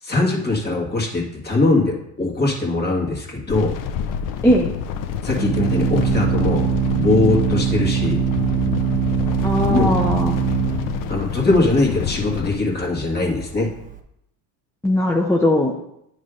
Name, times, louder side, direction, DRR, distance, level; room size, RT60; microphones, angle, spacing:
voice 1, 0.0-3.7 5.2-6.7 6.9-8.2 9.7-9.9 11.1-13.7, left 2 dB, 25° left, -1 dB, 1.8 m, -21 dB
sound 1, 3.5-12.6, left 8 dB, 55° left, 0.6 m, -28 dB
Organ, 3.5-14.0, right 7 dB, 20° right, 0.8 m, -23 dB
voice 2, 9.4-10.4 14.8-15.8, left 1 dB, 5° left, 0 dB, 0.4 m, -18 dB
9.4 x 3.3 x 5.0 m, 0.79 s
cardioid pair, 120°, 41 cm